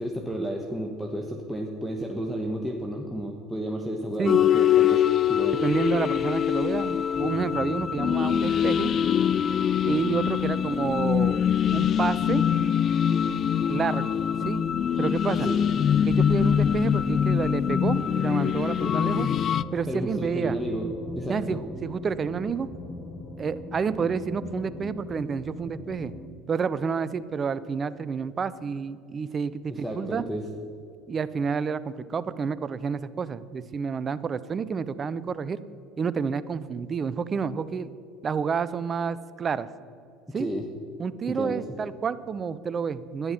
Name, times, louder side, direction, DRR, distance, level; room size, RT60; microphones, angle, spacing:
voice 1, 0.0-5.0 5.3-5.6 15.4-15.6 19.9-21.6 29.7-30.5 40.3-40.7 41.3-41.6, equal, ahead, 2 dB, 1.2 m, -32 dB
sound 1, 4.2-19.6, left 9 dB, 45° left, 0.3 m, -24 dB
voice 2, 5.5-8.9 9.8-11.4 11.7-12.4 13.7-14.6 15.0-15.5 16.1-19.3 19.7-20.6 21.3-22.7 23.4-26.1 26.5-30.2 31.1-35.6 36.0-37.9 38.2-39.7 40.3-40.5 41.0-43.3, right 6 dB, 35° right, 16 dB, 0.6 m, -29 dB
sound 2, 7.1-26.3, left 2 dB, 15° left, 1.3 m, -41 dB
11.0 x 10.5 x 5.9 m, 2.5 s
hypercardioid pair, 70°, 0 cm